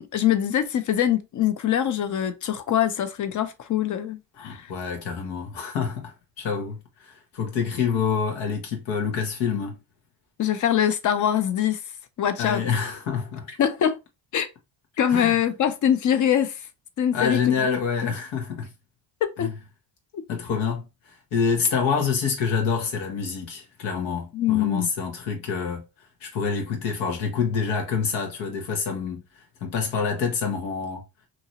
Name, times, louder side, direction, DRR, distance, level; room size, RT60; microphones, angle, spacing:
voice 1, 0.0-4.2 10.4-11.8 12.2-12.6 13.6-14.0 14.3-14.5 15.0-16.6 17.0-17.7 18.0-18.1 19.2-19.5 24.3-24.9, left 10 dB, 40° left, 0.6 m, -23 dB
voice 2, 4.3-9.7 12.4-13.6 15.1-15.4 17.1-18.7 19.4-19.5 20.3-20.8 21.3-25.8 26.2-29.2 29.6-31.0, left 6 dB, 85° left, 1.3 m, -27 dB
2.9 x 2.6 x 2.8 m
cardioid pair, 115°, 45 cm